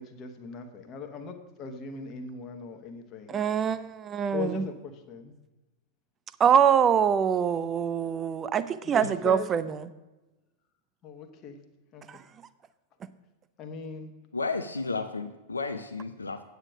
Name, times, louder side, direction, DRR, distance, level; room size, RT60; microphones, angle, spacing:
voice 1, 0.0-3.4 4.3-5.3 8.8-9.5 11.0-11.6 11.9-12.0 13.6-14.1, left 5 dB, 35° left, 5 dB, 1.2 m, -39 dB
voice 2, 3.3-4.6 6.4-9.8 12.1-12.2, right 8 dB, 25° right, 14 dB, 0.5 m, -24 dB
voice 3, 14.3-16.4, left 4 dB, 80° left, 8 dB, 0.5 m, -32 dB
8.9 x 8.1 x 4.9 m, 1.1 s
figure-of-eight pair, 90°, 0 cm